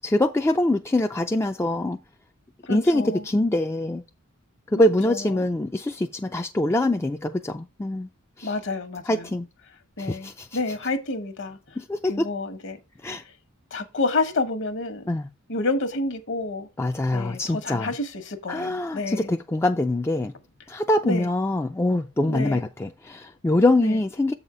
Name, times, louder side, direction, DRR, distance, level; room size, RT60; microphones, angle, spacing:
voice 1, 0.0-2.0 2.7-4.0 4.7-8.1 8.4-8.5 9.1-9.5 10.0-10.5 11.8-12.2 13.0-13.2 15.1-15.3 16.8-17.9 18.5-20.3 20.7-24.3, left 1 dB, 10° left, 0.3 m, -24 dB
voice 2, 2.7-3.2 4.7-5.5 8.4-9.3 10.0-11.6 12.0-12.8 13.7-15.0 15.5-16.7 17.1-19.3 21.0-21.3 22.3-22.6 23.8-24.0, left 2 dB, 55° left, 1.2 m, -29 dB
7.3 x 4.2 x 4.9 m
head